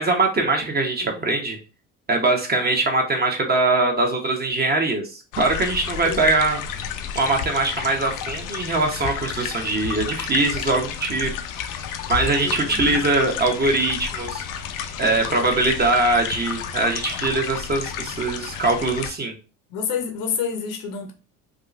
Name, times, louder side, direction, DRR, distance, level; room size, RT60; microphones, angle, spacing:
voice 1, 0.0-1.6 2.1-6.6 7.1-11.3 12.1-14.4 15.0-19.3, right 2 dB, 25° right, 0.8 m, -22 dB
sound 1, 5.3-19.1, left 8 dB, 55° left, 0.6 m, -31 dB
voice 2, 12.4-13.0 19.7-21.1, left 6 dB, 70° left, 0.9 m, -29 dB
3.6 x 2.3 x 2.5 m
hypercardioid pair, 65°, 39 cm